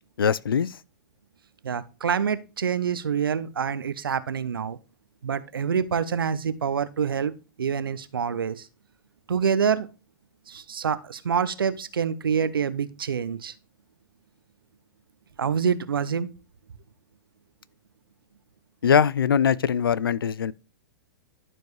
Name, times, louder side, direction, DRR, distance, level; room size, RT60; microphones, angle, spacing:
voice 1, 0.2-0.8 18.8-20.5, left 7 dB, 90° left, 0.4 m, -22 dB
voice 2, 1.6-4.8 5.2-7.3 7.6-8.7 9.3-9.9 10.5-13.5 15.4-16.3, right 7 dB, 85° right, 0.7 m, -26 dB
12.0 x 4.6 x 3.1 m
hypercardioid pair, 115°, 11 cm